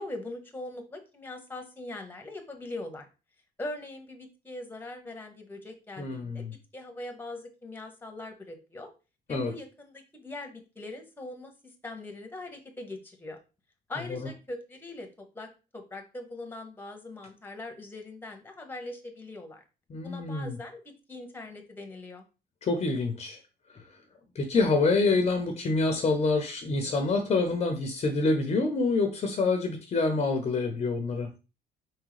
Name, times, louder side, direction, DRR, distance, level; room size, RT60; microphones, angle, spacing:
voice 1, 0.0-3.1 3.6-6.4 6.7-8.9 9.3-13.4 13.9-15.1 15.3-19.6 20.0-20.8 21.1-22.2, left 2 dB, 10° left, 4 dB, 1.1 m, -41 dB
voice 2, 6.0-6.5 9.3-9.5 14.1-14.2 19.9-20.6 22.6-23.4 24.4-31.3, left 3 dB, 40° left, 5 dB, 0.8 m, -26 dB
4.6 x 3.6 x 3.2 m, 0.31 s
cardioid pair, 110°, 17 cm